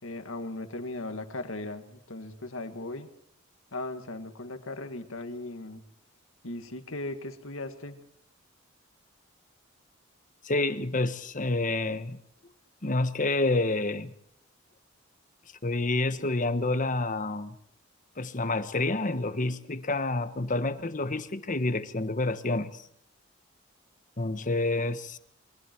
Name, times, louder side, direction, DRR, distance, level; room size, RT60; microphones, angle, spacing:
voice 1, 0.0-3.1 3.7-5.8 6.4-8.0, left 2 dB, 90° left, 2.0 m, -38 dB
voice 2, 10.4-12.2 12.8-14.1 15.6-17.6 18.2-22.8 24.2-25.2, left 2 dB, 40° left, 1.3 m, -28 dB
28.0 x 23.5 x 4.6 m
head